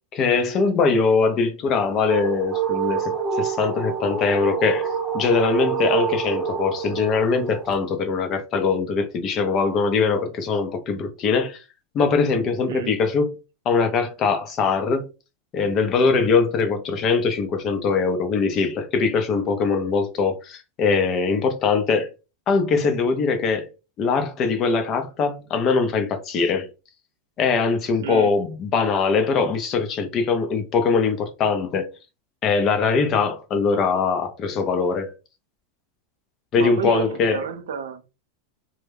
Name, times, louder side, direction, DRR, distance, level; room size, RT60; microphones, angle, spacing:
voice 1, 0.1-11.6 11.9-13.4 13.7-15.1 15.5-22.1 22.5-23.7 24.0-26.7 27.4-31.9 32.4-35.1 36.5-37.4, left 4 dB, 40° left, 0.7 m, -22 dB
sound 1, 1.6-7.8, right 7 dB, 15° right, 0.9 m, -27 dB
voice 2, 12.7-13.0 28.0-28.3 36.6-38.1, right 7 dB, 80° right, 0.5 m, -30 dB
2.2 x 2.1 x 3.3 m
hypercardioid pair, 115°, 0 cm